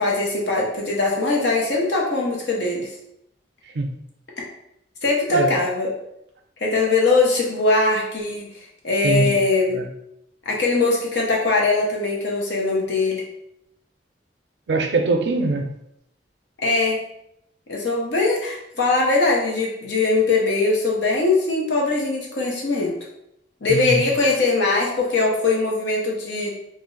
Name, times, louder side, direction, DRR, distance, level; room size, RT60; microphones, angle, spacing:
voice 1, 0.0-2.9 5.0-5.9 6.6-8.5 8.8-9.8 10.5-13.2 16.6-17.0 17.7-22.9 23.6-26.5, left 3 dB, 70° left, -2 dB, 0.7 m, -21 dB
voice 2, 9.0-9.4 9.7-9.9 14.7-15.8 23.7-24.0, right 2 dB, 70° right, 4 dB, 0.4 m, -22 dB
2.5 x 2.0 x 3.8 m, 0.78 s
head